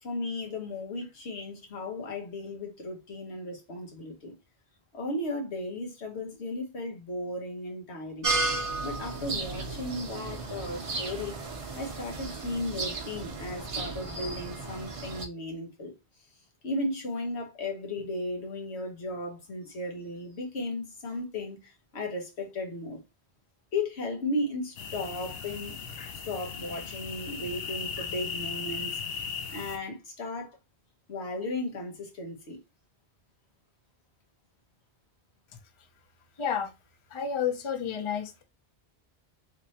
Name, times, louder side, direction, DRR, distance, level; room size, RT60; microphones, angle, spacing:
voice 1, 0.0-4.4 4.9-11.4 11.7-16.3 16.6-23.0 23.7-25.8 26.2-29.0 29.5-30.6 31.1-32.6, left 2 dB, 85° left, 1.4 m, -35 dB
sound 1, 8.2-15.3, right 3 dB, 35° right, 0.7 m, -34 dB
sound 2, 24.8-29.8, left 6 dB, 70° left, 0.9 m, -37 dB
voice 2, 36.4-36.7 37.1-38.4, left 7 dB, 35° left, 0.6 m, -30 dB
3.3 x 3.1 x 2.8 m
omnidirectional pair, 1.1 m